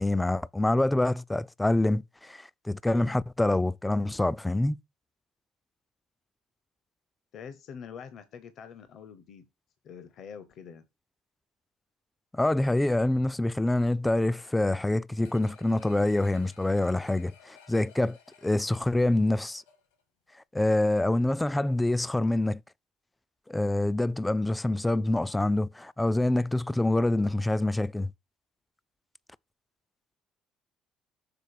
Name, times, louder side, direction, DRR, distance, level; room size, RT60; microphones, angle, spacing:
voice 1, 0.0-4.8 12.3-18.2 18.4-19.6 20.5-22.6 23.5-28.1, left 1 dB, 10° left, 0.3 m, -26 dB
voice 2, 7.3-9.5 9.8-10.8, left 7 dB, 60° left, 0.8 m, -45 dB
sound 1, 15.2-20.0 20.4-20.5, left 7 dB, 85° left, 1.8 m, -57 dB
6.9 x 4.1 x 4.7 m
hypercardioid pair, 55°, 0 cm